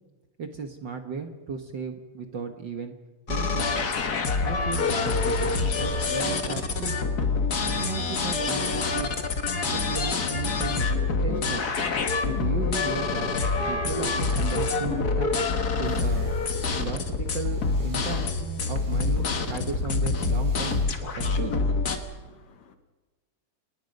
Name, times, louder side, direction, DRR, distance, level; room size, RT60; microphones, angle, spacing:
voice 1, 0.4-2.9 3.3-3.7 4.4-7.0 7.7-9.1 9.7-11.7 12.2-13.3 13.7-15.3 15.8-16.3 16.8-18.2 18.6-20.9 21.2-21.6, right 5 dB, 55° right, 1.3 m, -35 dB
sound 1, 3.3-22.0, left 4 dB, 45° left, 1.4 m, -26 dB
sound 2, 15.8-21.0, right 2 dB, 85° right, 8.9 m, -55 dB
voice 2, 22.0-22.8, left 7 dB, 60° left, 2.5 m, -54 dB
28.5 x 20.0 x 5.3 m
omnidirectional pair, 3.7 m